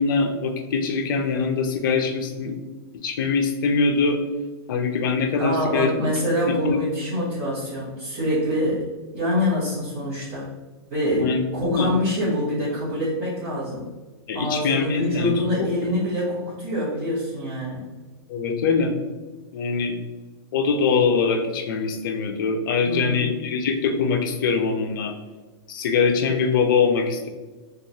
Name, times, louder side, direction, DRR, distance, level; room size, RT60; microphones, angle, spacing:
voice 1, 0.0-2.5 3.0-4.2 4.7-5.9 6.6-6.8 11.2-11.9 14.3-15.5 15.8-15.9 18.3-18.9 19.5-19.9 20.5-25.1 25.7-27.3, left 5 dB, 50° left, 4 dB, 0.4 m, -23 dB
voice 2, 5.4-8.9 9.1-10.6 10.9-13.9 14.3-17.8 22.8-23.4, left 1 dB, 35° right, -11 dB, 1.0 m, -25 dB
2.9 x 2.3 x 2.6 m, 1.3 s
supercardioid pair, 170°, 14 cm